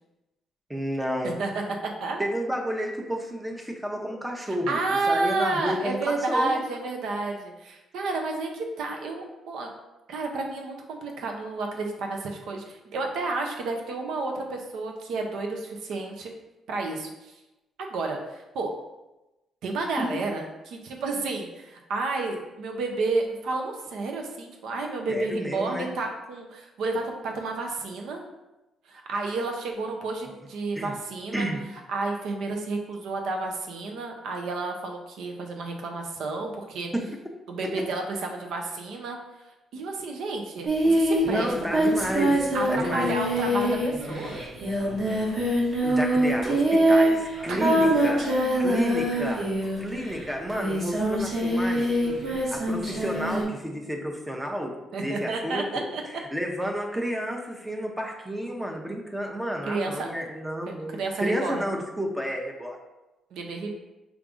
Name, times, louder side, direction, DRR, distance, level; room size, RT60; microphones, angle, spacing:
voice 1, 0.7-1.3 2.2-4.8 5.1-6.6 20.0-20.1 25.1-25.9 30.8-30.9 31.3-31.6 36.9-37.1 37.8-37.9 41.2-43.1 45.8-48.3 48.6-49.5 49.8-52.0 52.5-55.7 56.3-62.8, equal, 5° right, 1 dB, 0.7 m, -31 dB
voice 2, 1.2-2.3 4.5-9.7 10.1-16.3 16.7-17.3 17.9-18.7 19.6-28.2 28.9-31.5 31.9-36.9 37.5-39.2 39.7-41.5 42.5-44.4 47.5-47.6 54.9-56.0 59.6-60.1 60.7-61.6 63.3-63.7, right 3 dB, 80° right, 2 dB, 0.7 m, -31 dB
Singing, 40.7-50.0 50.5-53.4, right 1 dB, 60° right, 1.4 m, -24 dB
4.8 x 3.4 x 2.6 m, 1.0 s
cardioid pair, 90°, 0 cm